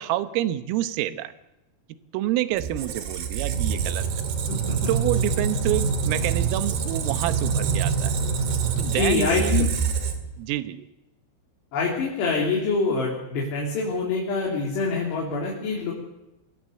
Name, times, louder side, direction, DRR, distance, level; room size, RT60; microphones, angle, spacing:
voice 1, 0.0-1.3 2.1-4.1 4.9-8.2 8.8-9.7 10.4-10.9, right 14 dB, 85° right, 12 dB, 3.7 m, -28 dB
Squeak, 2.6-10.4, right 6 dB, 60° right, 3.7 m, -25 dB
voice 2, 8.8-9.7 11.7-15.9, left 4 dB, 60° left, -3 dB, 5.6 m, -25 dB
24.5 x 17.5 x 8.3 m, 0.95 s
omnidirectional pair, 5.8 m